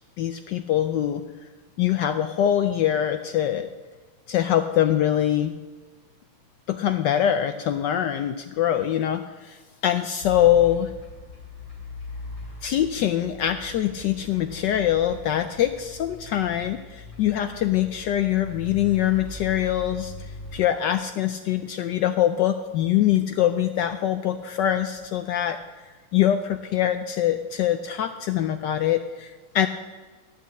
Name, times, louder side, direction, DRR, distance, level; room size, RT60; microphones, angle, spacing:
voice 1, 0.2-1.2 1.8-3.7 4.3-5.5 6.7-10.9 12.6-25.6 25.8-29.7, left 11 dB, 75° left, 9 dB, 1.0 m, -23 dB
sound 1, 10.2-20.6, left 3 dB, 45° left, 4.2 m, -40 dB
10.5 x 6.5 x 8.1 m, 1.3 s
omnidirectional pair, 2.4 m